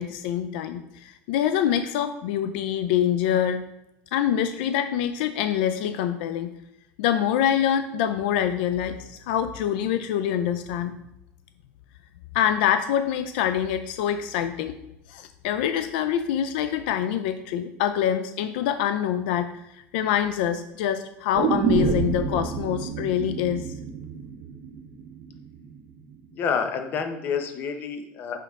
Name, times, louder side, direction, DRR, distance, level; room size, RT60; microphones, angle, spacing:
voice 1, 0.0-3.6 4.1-6.5 7.0-10.9 12.3-14.8 15.1-19.6 19.9-23.7, left 10 dB, 80° left, 9 dB, 0.4 m, -25 dB
sound 1, 21.3-25.4 25.7-25.8, right 6 dB, 55° right, 1.3 m, -28 dB
voice 2, 26.3-28.4, left 6 dB, 40° left, 7 dB, 0.8 m, -28 dB
5.8 x 5.8 x 3.6 m, 0.87 s
cardioid pair, 150°, 5 cm